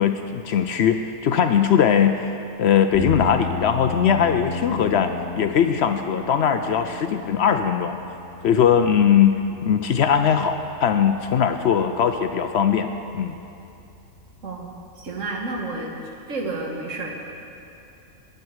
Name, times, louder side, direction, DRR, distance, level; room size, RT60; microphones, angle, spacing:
voice 1, 0.0-8.0 8.4-12.9 13.1-13.4, left 8 dB, 65° left, 7 dB, 0.7 m, -20 dB
sound 1, 2.9-15.4, left 3 dB, ahead, 3.3 m, -36 dB
voice 2, 14.4-15.9 16.3-17.1, right 3 dB, 70° right, 0 dB, 1.8 m, -30 dB
20.0 x 8.0 x 4.7 m, 2.8 s
omnidirectional pair, 1.4 m